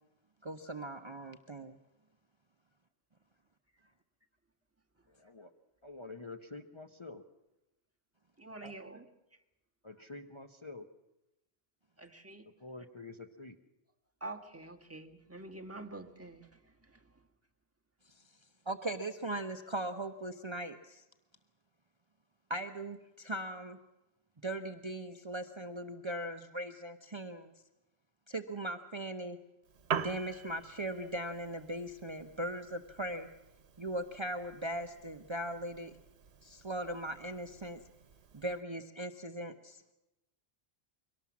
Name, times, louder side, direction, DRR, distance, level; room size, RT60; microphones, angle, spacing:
voice 1, 0.4-1.8 8.6-8.7 18.7-21.0 22.5-23.8 24.4-27.5 28.3-29.4 29.9-33.3 33.8-36.0 36.4-37.8 38.3-39.8, right 1 dB, 30° right, 7 dB, 0.9 m, -39 dB
voice 2, 5.1-5.5 5.8-7.2 9.8-10.8 12.6-13.6, left 3 dB, 30° left, 4 dB, 0.9 m, -47 dB
voice 3, 8.4-9.0 12.0-12.4 14.2-16.5, right 2 dB, 15° right, 2 dB, 1.5 m, -46 dB
Piano, 29.6-38.6, right 7 dB, 80° right, 1.2 m, -45 dB
23.5 x 18.0 x 7.3 m, 0.95 s
omnidirectional pair, 1.1 m